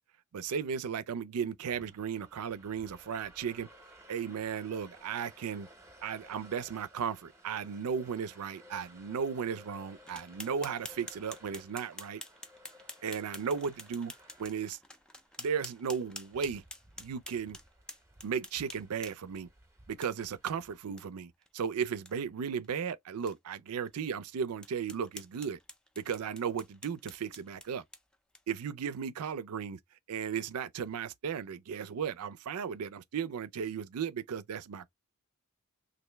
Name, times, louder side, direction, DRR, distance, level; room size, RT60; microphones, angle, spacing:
voice 1, 0.3-3.7 4.1-5.7 6.0-12.2 13.0-14.1 14.4-14.8 15.4-16.6 17.0-17.6 18.2-19.5 19.9-25.6 26.0-27.8 28.5-29.8 30.1-34.9, right 7 dB, 75° right, 0.4 m, -35 dB
sound 1, 1.6-21.0, equal, 10° right, 0.8 m, -58 dB
sound 2, 10.1-19.4 20.0-20.1 20.5-20.6 21.0-21.1 21.4-21.5 21.9-22.1 22.6-22.7 23.3-23.4 23.9-24.0 24.6-28.6, left 1 dB, 5° left, 0.4 m, -48 dB
3.1 x 2.6 x 3.3 m
head